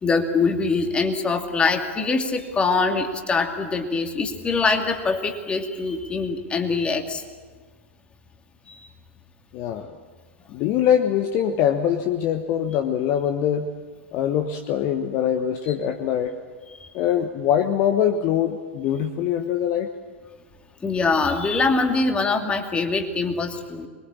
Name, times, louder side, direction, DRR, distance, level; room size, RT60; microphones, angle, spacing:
voice 1, 0.0-7.2 8.7-8.8 16.8-16.9 20.8-23.9, left 4 dB, 15° left, 4 dB, 2.6 m, -23 dB
voice 2, 9.5-10.0 10.5-13.7 14.1-16.4 16.9-19.9, left 9 dB, 35° left, 7 dB, 1.3 m, -23 dB
25.0 x 22.0 x 8.7 m, 1.5 s
figure-of-eight pair, 95°, 7 cm